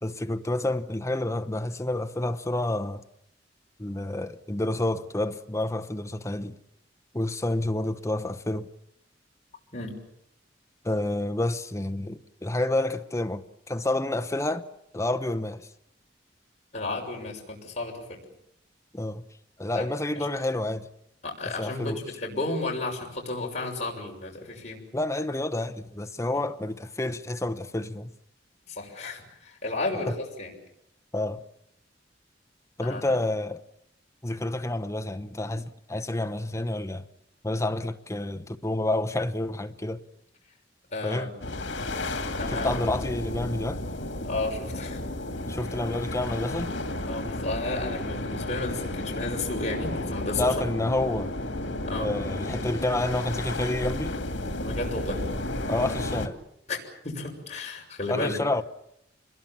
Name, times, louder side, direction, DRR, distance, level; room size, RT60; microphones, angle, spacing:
voice 1, 0.0-3.0 3.8-6.6 7.1-8.7 10.8-14.7 14.9-15.7 18.9-19.2 19.6-20.9 21.5-22.0 24.9-28.1 30.1-30.2 31.1-31.4 32.8-33.6 34.2-37.1 37.4-40.0 41.0-41.3 42.5-43.8 45.5-46.7 50.4-51.3 52.0-54.1 55.7-56.4 58.1-58.6, left 1 dB, 15° left, 0.9 m, -29 dB
voice 2, 16.7-18.2 19.7-19.8 20.2-20.3 21.2-24.8 28.7-30.1 30.4-30.5 32.8-33.1 40.9-41.4 42.4-42.9 44.2-45.0 47.1-50.5 51.9-52.1 54.6-55.2 56.7-56.8 57.0-58.4, left 2 dB, 40° left, 6.1 m, -33 dB
sound 1, 41.4-56.3, left 1 dB, 75° left, 2.5 m, -32 dB
27.5 x 21.5 x 7.3 m
head